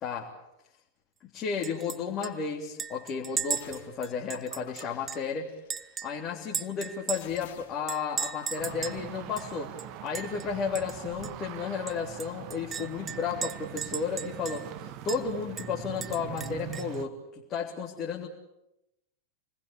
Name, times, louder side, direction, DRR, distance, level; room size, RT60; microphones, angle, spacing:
voice 1, 1.3-5.5 6.0-9.7 10.0-18.3, left 6 dB, 30° left, -2 dB, 3.3 m, -33 dB
Chink clink, 1.6-2.0 2.2-2.3 2.8-5.3 5.7-7.4 7.9-9.0 9.4-9.5 9.8-10.4 10.7-10.9 11.2-11.3 11.9-14.7 15.1-15.2 15.6-17.0, right 7 dB, 20° right, 1.0 m, -36 dB
sound 1, 3.6-4.0 4.3-6.1 7.2-9.8, left 9 dB, 50° left, 3.3 m, -51 dB
sound 2, 8.6-17.1, right 10 dB, 40° right, 1.6 m, -42 dB
28.5 x 20.5 x 8.5 m, 0.88 s
figure-of-eight pair, 90°, 0 cm